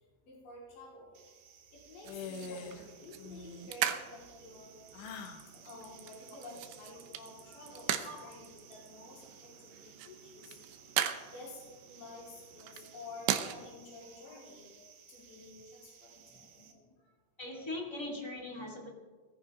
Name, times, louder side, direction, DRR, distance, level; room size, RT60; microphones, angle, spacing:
voice 1, 0.2-1.1 1.9-4.7 5.6-7.9 8.2-9.2 9.6-10.5 11.2-11.6 11.9-12.2 12.5-14.7 15.1-16.5, left 2 dB, 50° left, -6 dB, 6.0 m, -50 dB
sound 1, 1.1-16.7, right 8 dB, 65° right, 2.2 m, -58 dB
sound 2, 2.0-2.9 3.2-3.7 4.9-5.5, left 4 dB, 85° left, 3.5 m, -44 dB
sound 3, 2.0-13.5, right 11 dB, 80° right, 3.0 m, -40 dB
voice 2, 8.0-8.4 14.2-14.4 14.8-14.9 16.3-16.9 17.4-19.0, left 1 dB, 10° left, -2 dB, 1.3 m, -43 dB
20.0 x 15.0 x 3.8 m, 1.4 s
omnidirectional pair, 4.8 m